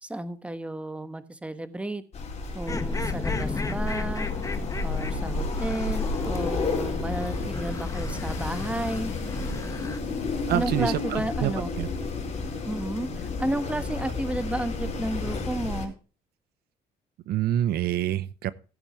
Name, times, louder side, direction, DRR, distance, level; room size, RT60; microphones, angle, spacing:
voice 1, 0.0-2.0 2.5-4.3 4.8-9.1 10.5-11.7 12.6-15.9, right 1 dB, 5° right, 11 dB, 1.2 m, -32 dB
Wind, 2.1-15.9, left 3 dB, 40° left, 4.5 m, -31 dB
sound 1, 2.7-10.0, left 3 dB, 20° left, 1.3 m, -36 dB
voice 2, 10.5-11.9 17.3-18.5, right 13 dB, 70° right, 16 dB, 0.8 m, -27 dB
16.5 x 8.8 x 3.1 m, 0.36 s
cardioid pair, 110°, 17 cm